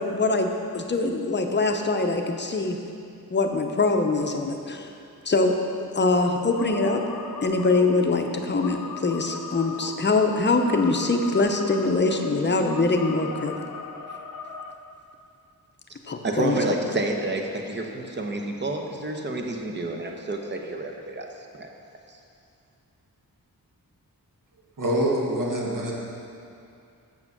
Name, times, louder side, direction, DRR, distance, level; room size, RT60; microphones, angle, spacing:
voice 1, 0.0-2.8 3.3-4.9 5.2-5.5 5.9-7.0 7.4-13.5 16.1-16.6, left 3 dB, 30° left, 4 dB, 0.7 m, -23 dB
sound 1, 6.6-14.7, left 5 dB, 70° left, 0.7 m, -38 dB
voice 2, 16.2-21.3 21.6-21.7 22.1-22.2, right 2 dB, 30° right, 2 dB, 0.8 m, -29 dB
voice 3, 24.8-25.9, right 1 dB, 65° right, -3 dB, 1.7 m, -25 dB
7.3 x 6.6 x 5.9 m, 2.5 s
wide cardioid pair, 125°, 35 cm